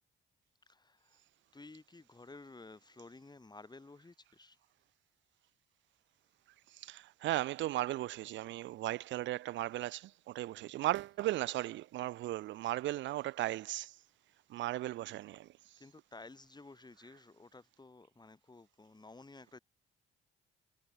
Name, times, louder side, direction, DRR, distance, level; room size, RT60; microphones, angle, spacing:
voice 1, 0.7-1.2 1.5-4.6 10.6-10.7 15.8-19.6, left 3 dB, 20° left, 6.6 m, -54 dB
voice 2, 6.8-13.9 14.5-15.5, right 15 dB, 70° right, 0.4 m, -36 dB
cardioid pair, 90°, 20 cm